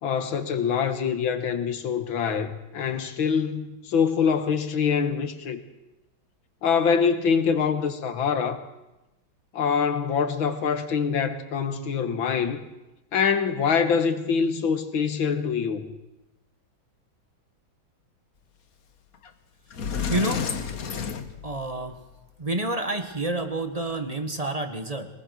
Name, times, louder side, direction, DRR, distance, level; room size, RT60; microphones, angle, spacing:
voice 1, 0.0-5.6 6.6-8.6 9.5-12.6 13.1-15.9, left 6 dB, 70° left, 9 dB, 2.3 m, -24 dB
Sliding door, 19.2-19.3 19.7-22.0, left 6 dB, 50° left, 1.5 m, -30 dB
voice 2, 20.1-20.4 21.4-22.0 22.4-25.1, right 2 dB, 20° right, 7 dB, 1.3 m, -28 dB
23.0 x 19.5 x 6.5 m, 1.0 s
omnidirectional pair, 2.3 m